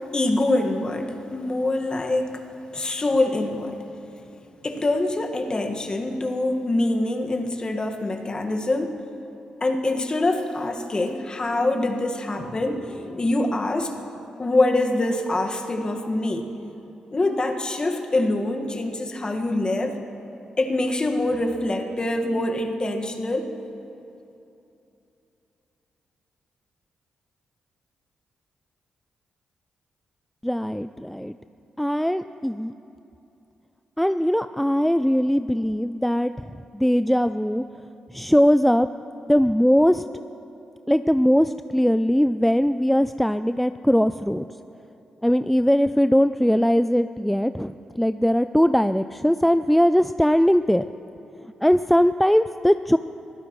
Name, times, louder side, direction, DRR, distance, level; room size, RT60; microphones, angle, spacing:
voice 1, 0.1-2.4 2.7-3.9 4.6-9.0 9.6-13.9 14.4-16.5 17.1-19.9 20.6-23.5, left 2 dB, 35° left, 3 dB, 1.7 m, -24 dB
voice 2, 30.4-31.3 31.8-32.7 34.0-36.3 36.7-37.6 38.1-38.9 39.3-40.0 40.9-44.4 45.2-50.8 51.6-53.0, equal, 5° left, 11 dB, 0.4 m, -20 dB
23.5 x 15.5 x 3.2 m, 2.9 s
supercardioid pair, 55°, 2 cm